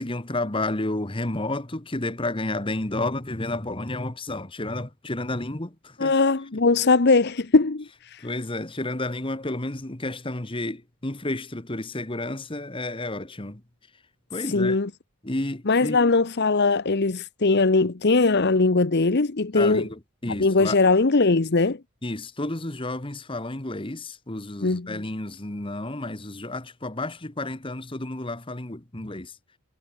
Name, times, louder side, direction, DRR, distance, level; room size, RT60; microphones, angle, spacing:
voice 1, 0.0-6.1 8.2-13.6 14.3-14.8 15.2-16.0 19.5-20.8 22.0-29.4, left 2 dB, 25° left, 1.4 m, -31 dB
voice 2, 6.0-8.3 14.5-14.9 15.7-19.9 20.4-21.8 24.6-25.0, left 3 dB, 50° left, 0.8 m, -20 dB
head